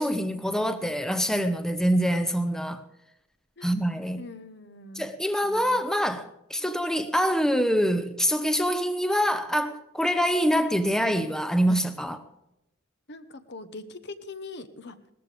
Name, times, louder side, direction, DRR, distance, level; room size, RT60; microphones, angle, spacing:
voice 1, 0.0-2.8 3.6-4.2 5.0-12.2, equal, 5° left, 9 dB, 0.7 m, -25 dB
voice 2, 4.2-5.1 5.4-5.8 6.6-6.7 13.1-15.0, left 3 dB, 55° left, 10 dB, 1.1 m, -42 dB
19.0 x 14.0 x 3.5 m, 0.87 s
head